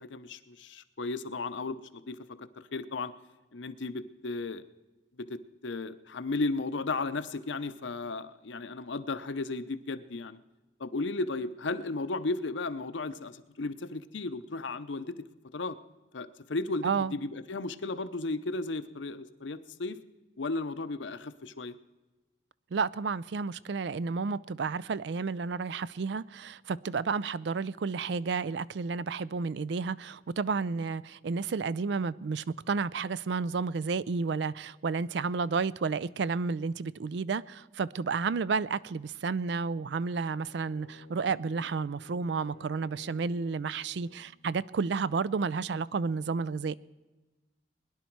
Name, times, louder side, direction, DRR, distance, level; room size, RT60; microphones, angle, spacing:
voice 1, 0.0-3.1 3.5-4.6 5.2-10.4 10.8-15.2 15.5-15.8 16.1-20.0 20.4-21.7, left 3 dB, 85° left, 0.7 m, -35 dB
voice 2, 16.8-17.1 22.7-46.8, right 5 dB, 75° right, 0.4 m, -31 dB
Bowed string instrument, 40.2-44.4, left 1 dB, 45° right, 6.2 m, -52 dB
21.5 x 10.5 x 4.6 m
head